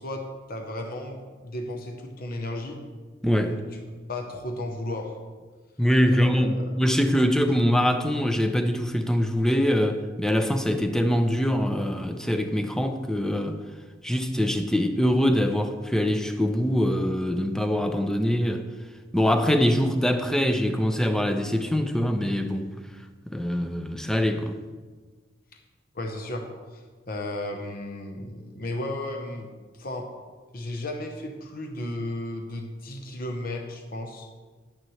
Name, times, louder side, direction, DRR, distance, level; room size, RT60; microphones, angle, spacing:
voice 1, 0.0-2.8 3.5-3.6 4.1-5.2 6.1-6.8 25.9-30.1 30.5-34.3, left 1 dB, 50° left, 0.9 m, -34 dB
voice 2, 3.2-3.6 5.8-13.6 14.0-18.7 19.1-22.7 23.3-24.5, equal, 5° left, 0.5 m, -23 dB
10.0 x 9.1 x 3.2 m
head